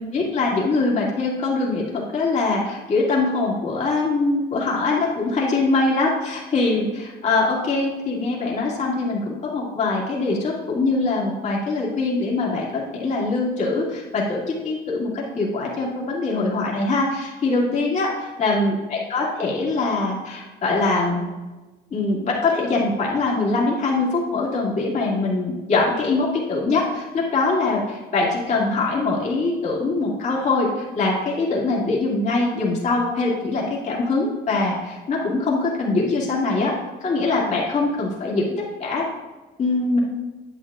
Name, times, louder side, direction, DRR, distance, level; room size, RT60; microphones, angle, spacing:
voice 1, 0.1-18.1 18.4-21.2 21.9-30.7 30.9-36.7 37.0-39.0 39.6-40.0, left 3 dB, 45° left, -4 dB, 2.4 m, -23 dB
9.9 x 8.3 x 2.4 m, 1.2 s
cardioid pair, 110°, 17 cm